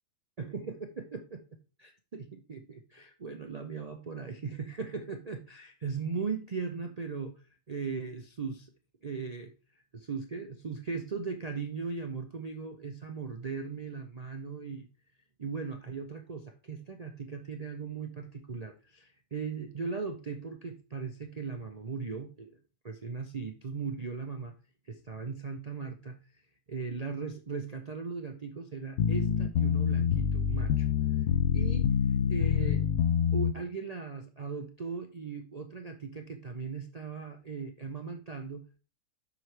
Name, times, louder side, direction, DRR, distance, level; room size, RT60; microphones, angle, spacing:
voice 1, 0.4-1.4 1.8-7.3 7.7-8.7 9.0-9.5 9.9-14.9 15.4-22.6 22.8-24.5 24.9-26.2 26.7-30.9 31.5-31.9 32.3-32.8 33.3-38.8, right 5 dB, 55° right, 4 dB, 0.4 m, -38 dB
sound 1, 29.0-33.5, left 8 dB, 65° left, 0.8 m, -26 dB
7.6 x 6.1 x 3.2 m, 0.34 s
omnidirectional pair, 1.6 m